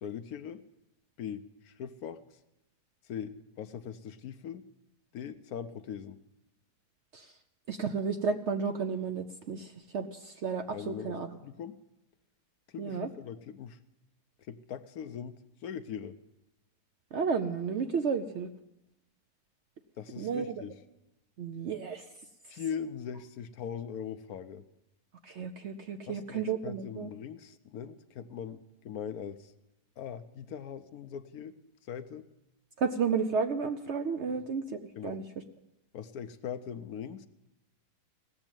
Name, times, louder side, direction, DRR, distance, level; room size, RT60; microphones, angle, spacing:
voice 1, 0.0-0.6 1.2-2.2 3.1-4.6 5.1-6.2 10.7-11.8 12.7-13.8 14.5-16.2 20.0-20.8 22.5-24.6 26.1-29.5 30.0-31.6 31.9-32.2 34.3-34.4 35.0-35.2 35.9-37.3, left 8 dB, 70° left, 11 dB, 1.1 m, -41 dB
voice 2, 7.7-11.3 12.8-13.1 17.1-18.5 20.2-20.6 21.4-22.1 25.2-27.1 32.8-35.2, right 5 dB, 60° right, 7 dB, 0.7 m, -32 dB
17.0 x 7.2 x 8.9 m, 0.94 s
omnidirectional pair, 1.7 m